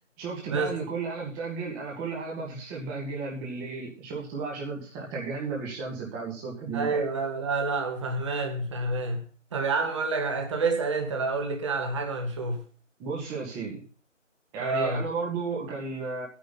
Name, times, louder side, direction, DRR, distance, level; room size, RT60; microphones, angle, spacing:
voice 1, 0.2-7.0 13.0-13.8 14.5-16.2, right 4 dB, 10° right, 2.0 m, -34 dB
voice 2, 6.7-9.2 9.5-12.6 14.6-15.0, right 3 dB, 25° right, 2.2 m, -28 dB
13.5 x 9.8 x 4.1 m
figure-of-eight pair, 155°, 38 cm